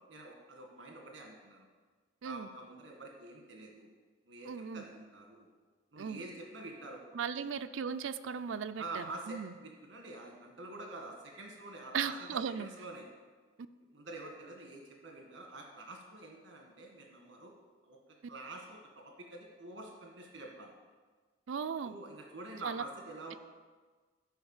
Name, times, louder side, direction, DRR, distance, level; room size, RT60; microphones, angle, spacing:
voice 1, 0.0-1.7 2.2-3.9 4.3-5.5 5.9-7.4 8.8-12.1 12.6-13.1 13.9-17.6 17.8-18.0 18.3-20.7 21.8-23.4, right 2 dB, 65° right, 1 dB, 1.8 m, -47 dB
voice 2, 4.5-4.8 6.0-6.2 7.1-9.5 11.9-12.7 21.5-21.9 22.6-22.8, right 6 dB, 80° right, 9 dB, 0.4 m, -37 dB
12.5 x 5.2 x 7.2 m, 1.4 s
head